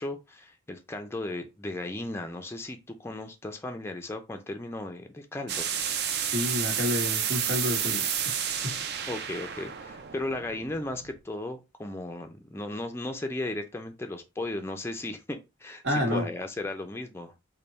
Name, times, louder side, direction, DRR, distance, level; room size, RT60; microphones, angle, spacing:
voice 1, 0.0-5.7 9.1-17.3, left 2 dB, 10° left, 0.4 m, -36 dB
sound 1, 5.5-11.2, right 8 dB, 50° right, 0.4 m, -31 dB
voice 2, 6.3-8.1 8.6-8.8 15.8-16.3, left 1 dB, 70° right, 1.2 m, -29 dB
3.4 x 2.2 x 4.0 m
head